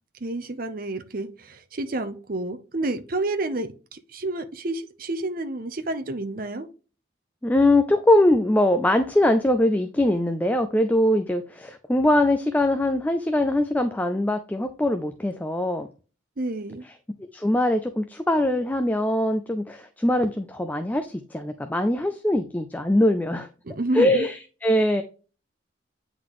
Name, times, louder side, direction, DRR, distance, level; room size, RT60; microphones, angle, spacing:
voice 1, 0.2-6.7 16.4-16.8 23.6-24.3, right 2 dB, 45° right, 0.7 m, -29 dB
voice 2, 7.4-15.9 17.3-23.5 23.9-25.0, left 1 dB, 10° left, 0.4 m, -22 dB
9.3 x 4.0 x 3.1 m
head